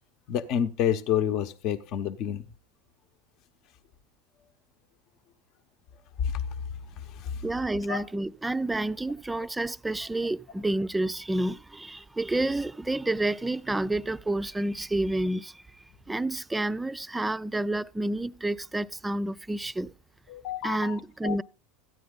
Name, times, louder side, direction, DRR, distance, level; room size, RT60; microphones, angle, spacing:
voice 1, 0.3-2.4 6.2-6.4 7.2-7.3 7.9-8.0 20.3-21.4, left 9 dB, 55° left, 0.8 m, -29 dB
voice 2, 7.4-15.6 16.1-19.9 20.6-21.4, right 2 dB, 10° right, 0.4 m, -29 dB
14.0 x 9.2 x 3.8 m
hypercardioid pair, 95°, 0 cm